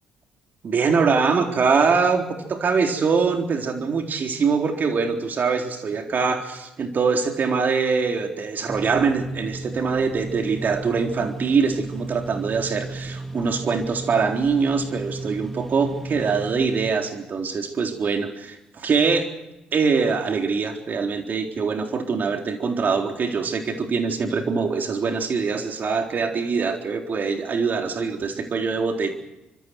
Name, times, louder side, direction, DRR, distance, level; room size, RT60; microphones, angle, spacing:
voice 1, 0.6-19.3 19.7-29.1, right 5 dB, 50° right, 3 dB, 3.8 m, -23 dB
sound 1, 8.7-16.9, right 2 dB, 5° left, 2.0 m, -34 dB
28.5 x 25.0 x 4.7 m, 0.93 s
hypercardioid pair, 50°, 4 cm